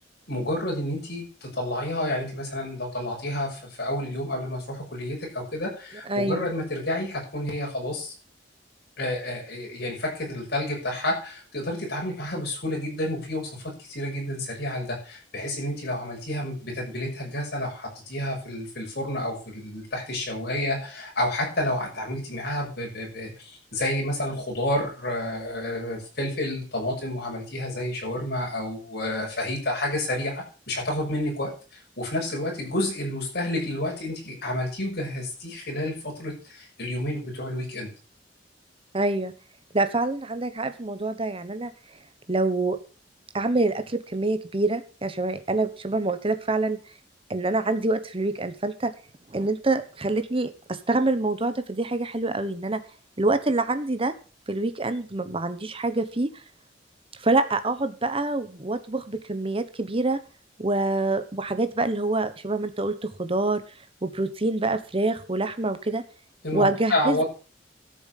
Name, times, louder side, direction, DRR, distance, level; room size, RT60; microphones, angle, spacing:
voice 1, 0.3-8.1 9.0-37.9 66.4-67.2, left 1 dB, 60° left, -1 dB, 6.4 m, -30 dB
voice 2, 6.1-6.5 38.9-39.3 39.7-41.7 42.3-42.8 43.3-46.8 47.3-48.9 49.3-52.8 53.2-54.1 54.5-56.3 57.2-60.2 60.6-63.6 64.0-66.0 66.5-67.2, right 2 dB, 30° right, 11 dB, 1.2 m, -26 dB
13.0 x 7.2 x 6.7 m, 0.38 s
head